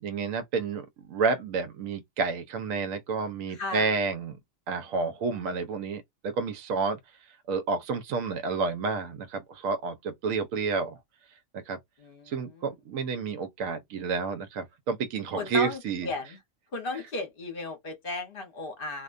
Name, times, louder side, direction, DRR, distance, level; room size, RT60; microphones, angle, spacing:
voice 1, 0.0-4.4 4.7-7.0 7.5-11.0 11.7-11.8 12.3-16.1, right 4 dB, 85° right, 1.0 m, -30 dB
voice 2, 3.5-3.9 12.0-12.7 15.4-16.4 16.7-19.0, left 3 dB, 50° left, 0.9 m, -35 dB
2.4 x 2.2 x 2.4 m
omnidirectional pair, 1.4 m